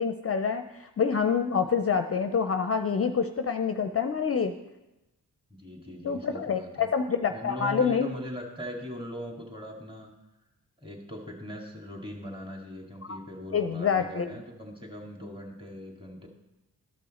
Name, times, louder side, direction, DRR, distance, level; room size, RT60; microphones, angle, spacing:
voice 1, 0.0-4.5 6.0-8.1 13.1-13.2 13.5-14.3, left 6 dB, 35° left, 8 dB, 0.5 m, -27 dB
voice 2, 5.6-6.9 7.3-10.1 10.8-16.3, equal, 10° right, 0 dB, 2.0 m, -40 dB
13.0 x 5.5 x 4.2 m, 0.99 s
supercardioid pair, 40°, 41 cm